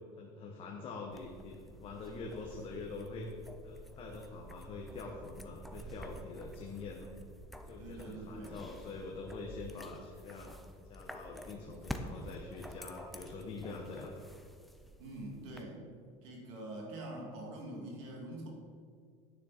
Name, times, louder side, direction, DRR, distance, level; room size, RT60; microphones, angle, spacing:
voice 1, 0.2-3.3 3.6-7.1 7.6-10.5 10.9-14.3, left 3 dB, 35° left, 0 dB, 1.2 m, -45 dB
sound 1, 1.1-15.6, equal, ahead, 0.6 m, -49 dB
voice 2, 7.8-8.6 15.0-15.8 16.2-18.5, right 1 dB, 90° right, 0 dB, 2.6 m, -44 dB
10.0 x 9.2 x 4.3 m, 2.1 s
cardioid pair, 145°, 16 cm